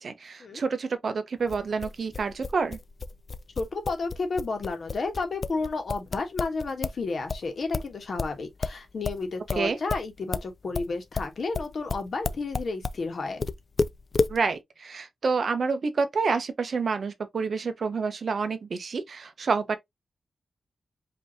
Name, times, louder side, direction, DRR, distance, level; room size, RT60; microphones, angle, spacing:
voice 1, 0.0-2.8 9.6-9.8 14.3-19.8, right 4 dB, 60° right, 0.7 m, -28 dB
sound 1, 1.5-7.0 7.3-13.0 13.4-14.4, left 4 dB, 40° left, 0.3 m, -31 dB
voice 2, 3.6-13.4, left 3 dB, 60° left, 1.3 m, -32 dB
5.1 x 2.8 x 2.8 m
wide cardioid pair, 130°, 0 cm